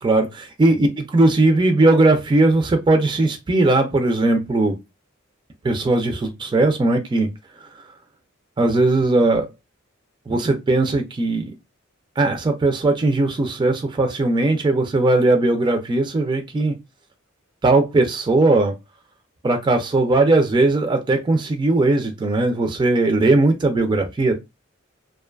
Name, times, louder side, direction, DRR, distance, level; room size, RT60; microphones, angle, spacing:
voice 1, 0.0-4.8 5.6-7.3 8.6-9.5 10.3-11.5 12.2-16.7 17.6-18.7 19.4-24.3, right 2 dB, 25° right, 0.3 m, -18 dB
2.4 x 2.2 x 2.3 m
head